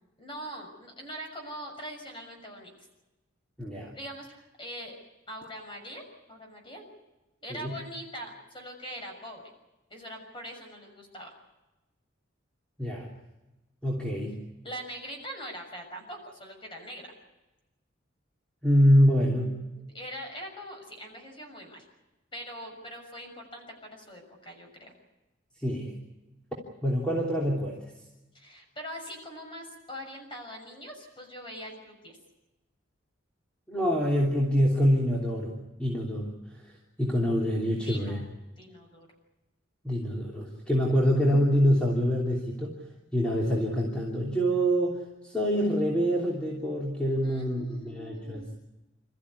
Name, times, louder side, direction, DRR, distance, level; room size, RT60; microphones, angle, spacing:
voice 1, 0.2-2.9 3.9-4.9 5.3-6.9 7.4-9.5 9.9-11.3 14.6-17.1 19.7-21.8 22.3-24.9 28.3-32.2 37.8-38.3 38.6-39.1 47.2-48.5, equal, 25° left, 3 dB, 6.5 m, -42 dB
voice 2, 3.6-3.9 7.5-7.7 12.8-13.1 13.8-14.4 18.6-19.6 25.6-25.9 26.8-27.8 33.7-35.5 35.8-36.3 37.0-38.2 39.8-42.8 43.1-48.6, equal, 5° left, -4 dB, 3.1 m, -25 dB
27.5 x 14.5 x 9.8 m, 1.0 s
head